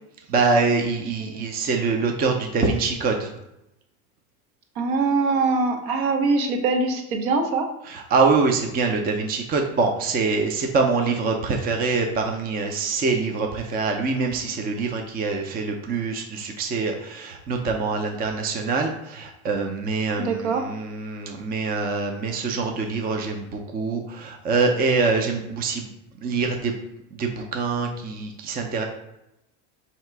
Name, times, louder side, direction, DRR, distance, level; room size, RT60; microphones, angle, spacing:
voice 1, 0.3-3.3 7.9-25.9 26.2-26.8 27.2-28.8, right 4 dB, 25° right, 3 dB, 0.5 m, -24 dB
voice 2, 4.8-7.7 20.2-20.7, right 3 dB, 70° right, 4 dB, 0.9 m, -23 dB
3.2 x 2.9 x 4.5 m, 0.87 s
supercardioid pair, 120°, 34 cm